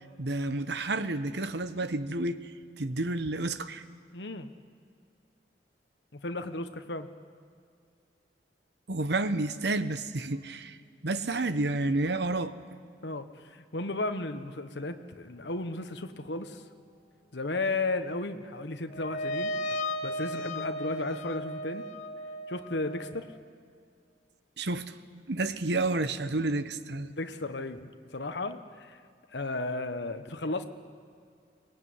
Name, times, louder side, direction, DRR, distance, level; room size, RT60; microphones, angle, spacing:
voice 1, 0.2-2.5 2.8-3.8 8.9-10.8 11.0-12.6 24.6-24.9 25.3-27.1, right 2 dB, 70° right, 12 dB, 1.1 m, -30 dB
voice 2, 4.1-4.5 6.1-7.1 13.0-16.6 17.3-21.9 22.5-23.4 27.1-29.0 29.3-30.6, left 2 dB, 75° left, 8 dB, 1.3 m, -34 dB
sound 1, 18.9-23.1, equal, 45° left, 1.9 m, -35 dB
23.5 x 19.5 x 9.6 m, 2.3 s
head